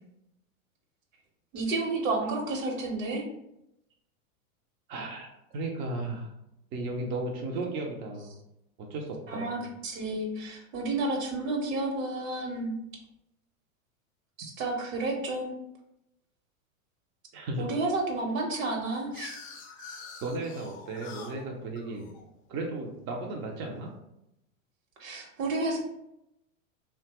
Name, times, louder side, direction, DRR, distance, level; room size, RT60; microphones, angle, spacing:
voice 1, 1.5-3.2 9.3-9.6 9.8-12.8 14.4-15.5 17.6-19.3 25.0-25.8, right 2 dB, 65° right, 1 dB, 1.0 m, -31 dB
voice 2, 4.9-6.3 6.7-8.3 8.8-9.6 17.3-17.7 20.2-22.1 22.5-23.9, right 2 dB, 30° right, 0 dB, 0.4 m, -35 dB
sound 1, 18.6-23.4, left 5 dB, 30° left, 0.6 m, -46 dB
2.9 x 2.2 x 2.8 m, 0.83 s
hypercardioid pair, 110°, 41 cm